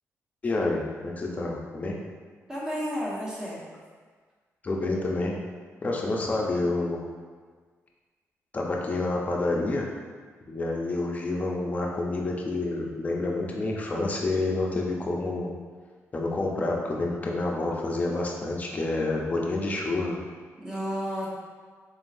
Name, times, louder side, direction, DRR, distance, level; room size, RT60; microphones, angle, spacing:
voice 1, 0.4-2.0 4.6-5.4 5.8-7.0 8.5-9.9 10.5-15.5 16.1-20.1, left 2 dB, 30° left, -1 dB, 0.6 m, -28 dB
voice 2, 2.5-3.6 20.6-21.3, equal, 10° right, -7 dB, 1.1 m, -31 dB
4.1 x 3.7 x 2.6 m, 1.5 s
cardioid pair, 130°, 5 cm